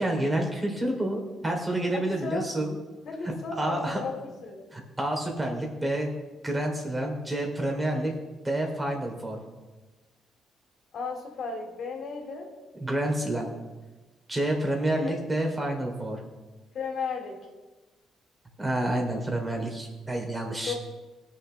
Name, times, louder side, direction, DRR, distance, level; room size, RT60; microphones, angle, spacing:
voice 1, 0.0-2.7 3.6-4.0 4.7-6.1 6.4-8.1 8.4-9.4 12.8-13.5 14.3-16.2 18.6-20.7, right 1 dB, 15° right, 1 dB, 3.2 m, -28 dB
voice 2, 1.9-2.5 3.1-4.6 10.9-12.5 14.9-15.2 16.7-17.4 20.7-20.8, left 5 dB, 65° left, 2 dB, 2.6 m, -34 dB
21.0 x 7.2 x 3.4 m, 1.2 s
cardioid pair, 90°, 0 cm